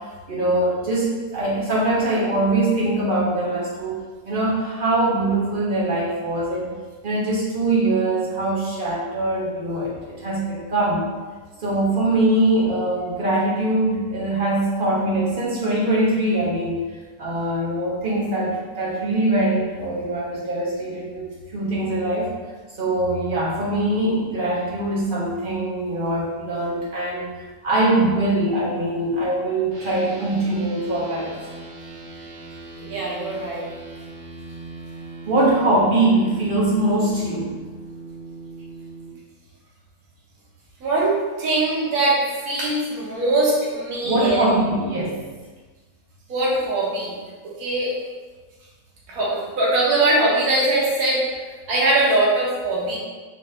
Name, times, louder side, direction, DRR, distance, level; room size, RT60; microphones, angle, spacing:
voice 1, 0.3-4.0 4.2-6.7 7.0-11.0 11.6-16.8 17.2-22.3 22.8-27.3 27.6-31.3 35.3-37.5 44.0-45.2, right 1 dB, 45° right, -6 dB, 0.7 m, -22 dB
sound 1, 29.7-39.1, right 3 dB, 85° right, 1.7 m, -39 dB
voice 2, 32.8-33.6 40.8-44.5 46.3-47.1 47.6-47.9 49.1-51.2 51.7-53.0, right 2 dB, 60° right, -5 dB, 1.4 m, -21 dB
3.9 x 2.6 x 3.2 m, 1.3 s
omnidirectional pair, 1.8 m